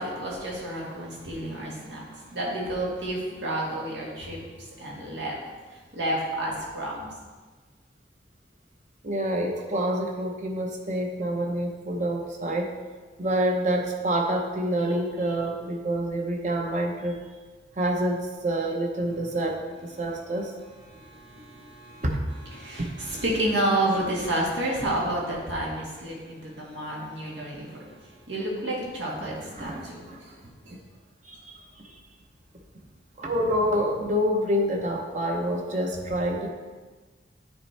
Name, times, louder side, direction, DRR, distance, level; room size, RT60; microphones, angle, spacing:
voice 1, 0.0-4.4 4.8-5.4 5.7-7.1 20.9-22.0 22.5-30.4 30.6-30.7, right 1 dB, 85° right, -4 dB, 1.8 m, -30 dB
voice 2, 9.0-12.7 13.2-17.2 17.7-20.5 22.0-22.1 22.8-22.9 29.2-30.2 31.2-31.7 33.2-36.5, right 1 dB, 40° right, 1 dB, 0.8 m, -27 dB
9.8 x 4.3 x 3.3 m, 1.3 s
head